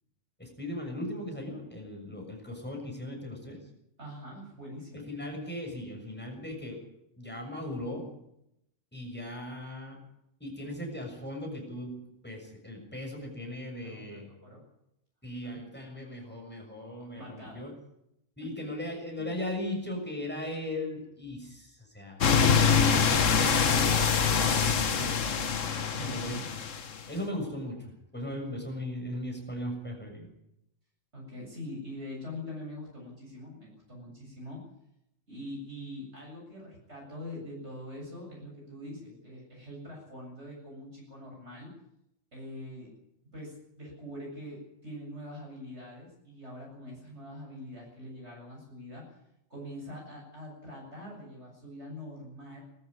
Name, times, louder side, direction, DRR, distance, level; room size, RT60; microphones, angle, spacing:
voice 1, 0.4-3.6 5.1-6.8 7.2-8.1 8.9-10.0 10.4-14.3 15.2-17.7 18.4-22.3 22.8-23.8 24.4-25.2 26.0-26.4 27.1-30.3, left 1 dB, 10° left, 1 dB, 6.8 m, -38 dB
voice 2, 4.0-5.1 13.8-14.6 15.4-15.6 17.1-17.6 18.4-18.5 25.9-26.5 28.3-28.6 31.1-34.7 35.3-41.7 42.3-42.9 43.3-49.1 49.5-52.6, left 1 dB, 60° right, -2 dB, 8.2 m, -43 dB
sound 1, 22.2-27.0, left 6 dB, 75° left, 1.7 m, -25 dB
20.5 x 14.0 x 9.8 m, 0.80 s
omnidirectional pair, 1.3 m